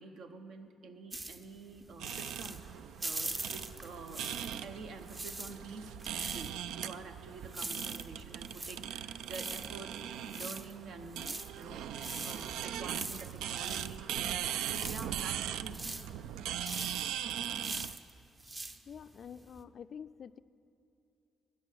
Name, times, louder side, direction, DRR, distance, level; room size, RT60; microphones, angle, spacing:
voice 1, 0.0-2.6 3.0-4.3 4.6-11.3 11.6-14.1 14.6-16.2, right 4 dB, 70° right, 7 dB, 1.0 m, -48 dB
sound 1, 1.1-4.7 5.0-19.6, right 2 dB, 25° right, 0.7 m, -43 dB
sound 2, 2.0-18.0, right 10 dB, 90° right, 0.3 m, -40 dB
voice 2, 18.9-20.4, left 7 dB, 55° left, 15 dB, 0.3 m, -47 dB
13.5 x 9.2 x 9.3 m, 2.9 s
cardioid pair, 90°, 0 cm